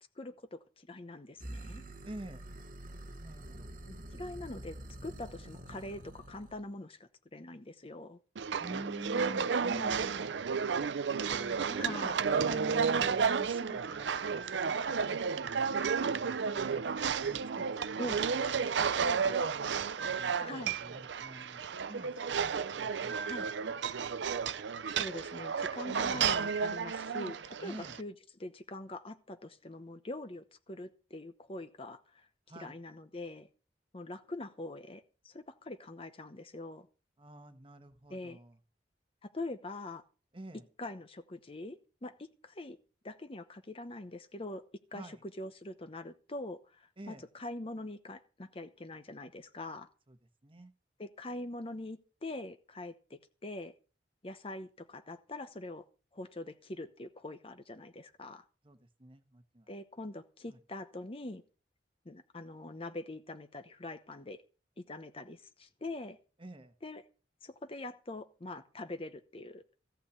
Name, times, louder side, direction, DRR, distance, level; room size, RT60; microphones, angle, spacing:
voice 1, 0.2-1.8 3.8-4.8 5.0-8.2 11.8-12.2 18.0-18.3 20.4-20.8 23.2-23.5 24.9-28.1 28.4-32.3 32.6-33.5 33.9-36.9 38.1-38.4 39.2-40.0 40.8-42.8 43.0-44.6 44.9-49.9 51.0-53.7 54.2-55.8 56.1-58.4 59.7-61.4 62.0-64.4 64.8-66.2 66.8-67.0 67.4-69.6, left 2 dB, 30° left, 10 dB, 0.9 m, -43 dB
sound 1, 1.4-6.6, right 1 dB, 50° right, 1.3 m, -47 dB
voice 2, 2.0-2.4 3.2-3.7 8.6-10.4 11.3-12.2 12.4-14.6 14.8-16.1 16.4-16.8 17.2-17.8 18.1-19.4 20.0-21.6 21.9-22.4 22.7-23.2 23.6-23.7 27.6-28.0 32.5-32.8 37.2-38.6 40.3-40.6 44.9-45.2 47.0-47.2 50.1-50.2 50.4-50.7 58.6-59.7 60.5-60.6 66.4-66.7, right 1 dB, 30° right, 8 dB, 1.2 m, -47 dB
sound 2, 8.4-28.0, right 6 dB, 80° right, 0.5 m, -32 dB
14.5 x 5.8 x 8.1 m, 0.37 s
head